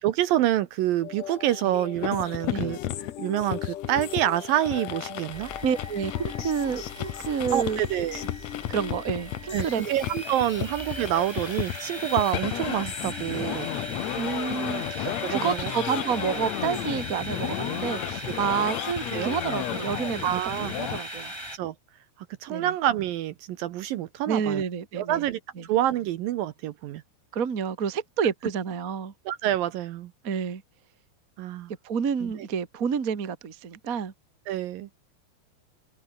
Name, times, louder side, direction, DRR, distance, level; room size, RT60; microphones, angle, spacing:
voice 1, 0.0-2.8 3.2-5.5 7.5-8.2 9.5-13.7 14.8-15.7 19.1-19.3 20.2-20.7 21.5-21.7 22.4-24.6 25.0-25.4 25.7-27.0 29.3-30.1 31.4-31.7 32.2-32.3 34.5-34.9, right 12 dB, 75° right, 2.4 m, -27 dB
sound 1, 1.0-17.4, left 12 dB, 60° left, 2.7 m, -41 dB
sound 2, 2.0-21.0, left 13 dB, 85° left, 1.5 m, -34 dB
sound 3, 5.3-21.6, right 1 dB, 5° right, 7.3 m, -39 dB
voice 2, 5.6-7.8 8.7-9.9 13.0-13.1 14.2-20.3 20.8-21.3 22.5-22.7 24.3-25.2 27.3-29.1 30.2-30.6 31.8-34.1, right 7 dB, 40° right, 1.2 m, -29 dB
open air
omnidirectional pair, 4.7 m